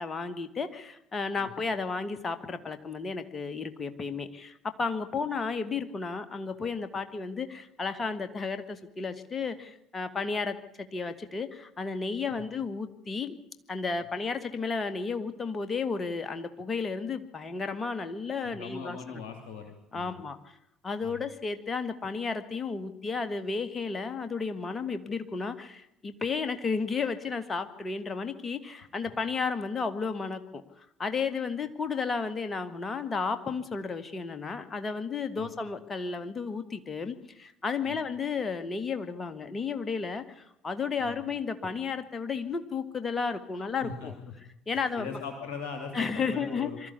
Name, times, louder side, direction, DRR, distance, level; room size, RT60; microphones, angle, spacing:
voice 1, 0.0-10.6 10.9-13.4 13.7-19.2 19.9-20.4 20.8-44.1 44.7-45.1 45.9-46.9, left 5 dB, 30° left, 10 dB, 2.0 m, -33 dB
voice 2, 18.4-20.3 21.0-21.2 35.4-35.5 37.8-37.9 41.0-41.2 43.5-44.1 44.7-46.9, left 5 dB, 55° left, 4 dB, 2.7 m, -41 dB
23.5 x 13.5 x 8.4 m, 0.84 s
figure-of-eight pair, 55°, 0 cm